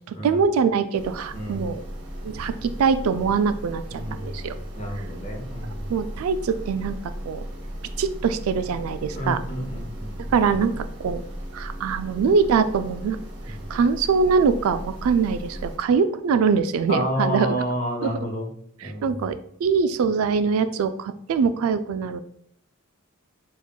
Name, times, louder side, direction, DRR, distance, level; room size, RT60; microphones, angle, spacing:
voice 1, 0.1-1.8 2.2-4.5 5.9-7.4 8.0-9.4 10.3-11.2 11.5-13.2 13.7-17.6 18.0-18.2 18.8-22.2, right 5 dB, 80° right, 11 dB, 0.3 m, -23 dB
sound 1, 0.9-15.8, equal, 55° right, 0.8 m, -36 dB
voice 2, 1.3-1.6 3.9-4.4 4.7-5.9 9.1-10.3 13.4-13.6 16.9-18.5 18.8-19.1, equal, 35° left, 1 dB, 1.0 m, -30 dB
7.1 x 2.4 x 2.2 m, 0.70 s
head